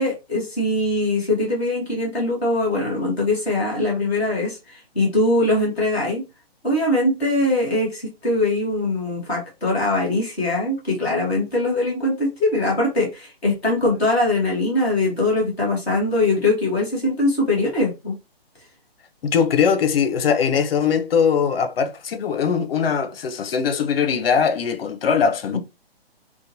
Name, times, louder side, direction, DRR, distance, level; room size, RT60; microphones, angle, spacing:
voice 1, 0.0-6.2 6.6-18.1 25.5-25.6, left 2 dB, ahead, 0.3 m, -22 dB
voice 2, 19.2-25.6, left 6 dB, 65° left, 0.6 m, -21 dB
2.9 x 2.2 x 2.5 m
hypercardioid pair, 155°, 31 cm